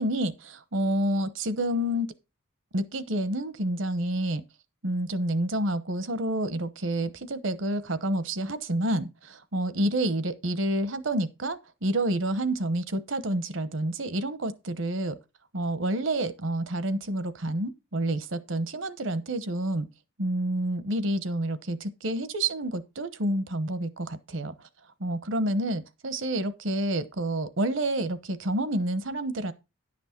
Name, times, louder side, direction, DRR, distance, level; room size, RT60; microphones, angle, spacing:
voice 1, 0.0-2.1 2.7-4.4 4.8-15.2 15.5-19.9 20.2-24.5 25.0-29.5, right 1 dB, 65° right, 0.9 m, -29 dB
11.0 x 6.1 x 4.4 m
head